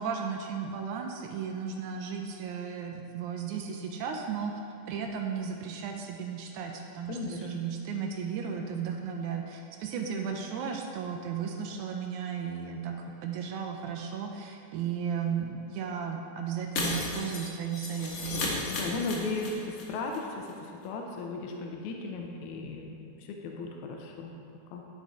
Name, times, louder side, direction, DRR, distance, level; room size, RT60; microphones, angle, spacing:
voice 1, 0.0-4.6 4.9-12.9 13.2-18.4, right 7 dB, 80° right, 2 dB, 1.8 m, -35 dB
voice 2, 7.1-7.5 18.7-22.9 23.2-24.3 24.7-24.8, left 3 dB, 80° left, 1 dB, 1.9 m, -36 dB
Shatter, 16.8-19.8 20.1-20.2 20.5-20.6, left 2 dB, 60° left, 1.8 m, -34 dB
11.0 x 4.1 x 4.7 m, 2.5 s
omnidirectional pair, 3.9 m